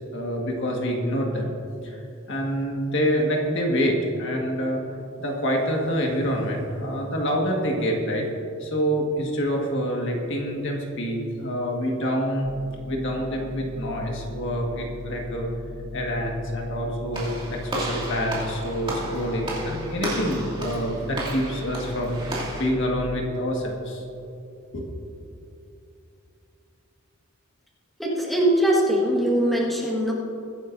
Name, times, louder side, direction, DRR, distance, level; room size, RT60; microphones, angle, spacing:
voice 1, 0.1-1.6 1.8-2.0 2.3-4.8 5.2-8.3 8.6-12.5 12.9-15.5 15.9-24.0 24.7-24.9, equal, 55° left, 0 dB, 1.7 m, -26 dB
sound 1, 12.4-23.0, left 3 dB, 85° left, 1.2 m, -39 dB
Walk footsteps / Slam, 17.1-22.7, right 1 dB, 25° right, 2.8 m, -33 dB
voice 2, 28.0-30.1, right 1 dB, ahead, -5 dB, 1.7 m, -21 dB
21.5 x 10.5 x 2.7 m, 2.7 s
head